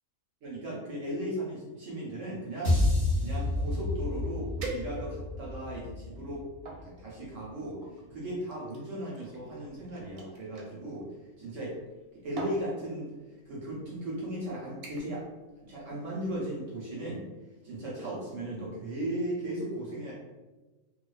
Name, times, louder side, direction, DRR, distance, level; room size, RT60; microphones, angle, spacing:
voice 1, 0.4-2.9 3.2-6.5 6.8-7.8 8.1-11.1 11.4-11.8 12.2-13.1 13.5-15.2 15.6-17.2 17.6-20.1, right 1 dB, 65° right, -5 dB, 0.8 m, -36 dB
sound 1, 2.6-7.0, left 2 dB, 35° left, 0.8 m, -30 dB
sound 2, 4.6-5.4 6.0-6.8 7.8-10.7 11.8-12.0 12.4-12.7 13.5-13.7 14.1-14.4 14.8-15.2 15.6-15.9 16.3-16.4, right 2 dB, 90° right, 1.1 m, -43 dB
2.5 x 2.2 x 2.3 m, 1.2 s
omnidirectional pair, 1.6 m